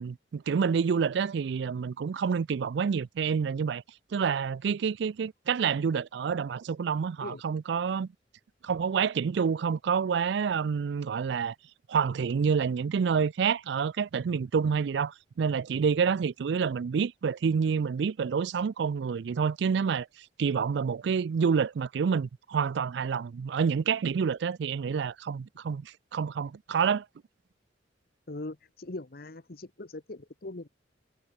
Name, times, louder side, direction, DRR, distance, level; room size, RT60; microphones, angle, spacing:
voice 1, 0.0-3.8 4.1-8.1 8.6-11.5 11.9-20.1 20.4-27.1, right 6 dB, 65° right, 0.4 m, -28 dB
voice 2, 28.3-30.7, left 2 dB, 55° left, 1.2 m, -40 dB
head